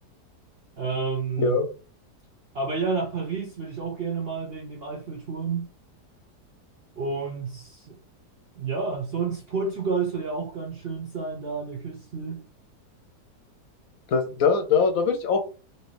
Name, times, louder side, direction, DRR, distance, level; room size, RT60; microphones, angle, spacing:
voice 1, 0.8-1.6 2.5-5.7 7.0-8.0 8.6-12.4, right 4 dB, 55° right, 0.7 m, -30 dB
voice 2, 14.1-15.4, left 5 dB, 70° left, 0.9 m, -22 dB
2.9 x 2.8 x 3.1 m
omnidirectional pair, 1.7 m